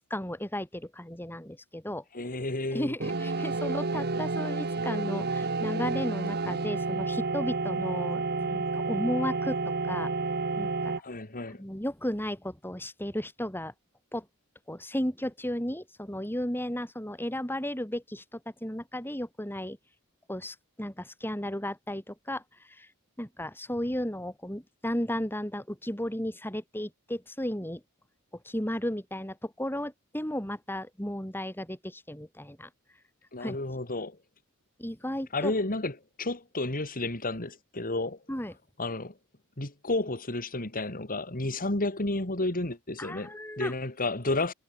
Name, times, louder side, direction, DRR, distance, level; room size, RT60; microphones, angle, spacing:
voice 1, 0.1-2.0 2.7-9.6 9.9-10.1 10.6-11.0 11.6-13.7 14.1-14.3 14.7-19.8 20.3-22.4 22.7-22.9 23.2-27.8 28.4-32.7 33.4-33.6 34.8-35.5 38.3-38.5 43.0-43.7, left 1 dB, 10° left, 6.6 m, -34 dB
voice 2, 2.1-2.9 11.0-11.6 33.3-34.2 35.3-38.2 38.8-39.1 39.6-44.5, left 2 dB, 40° left, 3.2 m, -31 dB
sound 1, 3.0-11.0, right 3 dB, 45° right, 1.4 m, -30 dB
head